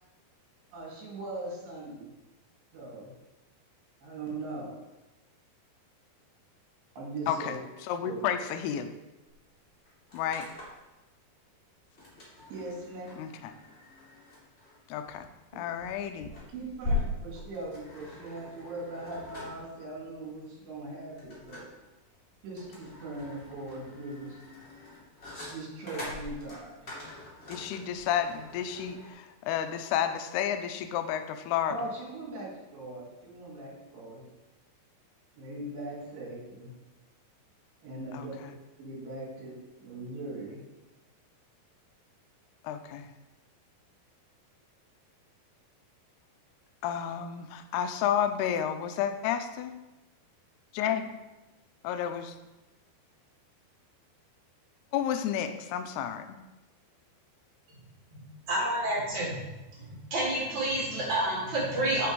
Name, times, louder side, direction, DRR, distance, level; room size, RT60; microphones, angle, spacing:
voice 1, 0.7-2.1 2.7-3.1 4.0-4.7 7.0-7.6 8.0-8.2 12.5-13.1 15.5-15.6 16.5-21.7 22.4-24.4 25.5-26.9 31.7-34.3 35.4-36.7 37.8-38.3 38.8-40.6, right 2 dB, 80° right, -4 dB, 4.5 m, -40 dB
voice 2, 7.3-7.6 7.8-8.9 10.1-10.5 13.2-13.5 14.9-15.3 15.5-16.3 27.5-31.8 38.1-38.5 42.6-43.1 46.8-49.7 50.8-51.1 51.8-52.4 54.9-56.4, left 9 dB, 85° left, 8 dB, 2.4 m, -31 dB
sound 1, 9.3-9.4 9.6-10.9 11.9-29.1, left 3 dB, 25° left, 1.3 m, -41 dB
voice 3, 58.5-59.3 59.8-62.1, right 1 dB, 45° right, -6 dB, 3.2 m, -29 dB
8.3 x 5.9 x 4.7 m, 1.0 s
omnidirectional pair, 5.0 m